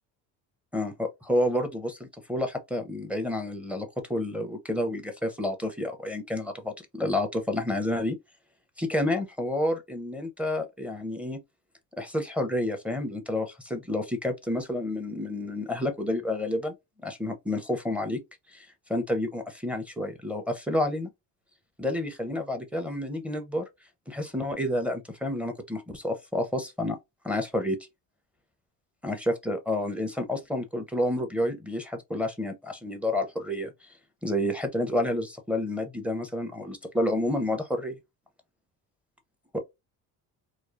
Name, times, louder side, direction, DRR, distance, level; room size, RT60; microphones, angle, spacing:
voice 1, 0.7-8.2 8.8-11.4 12.0-16.7 17.0-18.2 18.5-21.1 21.8-23.6 24.1-27.0 27.2-27.8 29.0-33.7 34.2-38.0 39.5-39.6, left 1 dB, 5° right, 0.5 m, -29 dB
3.1 x 2.0 x 2.3 m
cardioid pair, 110°, 40 cm